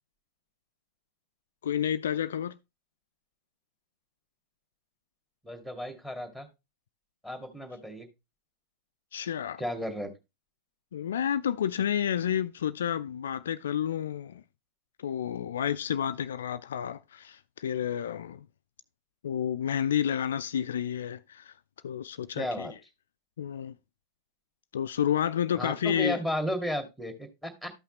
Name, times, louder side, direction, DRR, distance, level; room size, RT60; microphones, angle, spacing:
voice 1, 1.6-2.6 9.1-9.6 10.9-14.4 15.0-18.5 19.2-21.5 21.8-22.7 23.4-23.7 24.7-26.2, left 9 dB, 65° left, 0.4 m, -30 dB
voice 2, 5.4-6.5 7.2-8.1 9.6-10.1 22.4-22.7 25.5-27.7, equal, 5° right, 2.0 m, -34 dB
13.0 x 5.7 x 3.0 m
figure-of-eight pair, 90°, 0 cm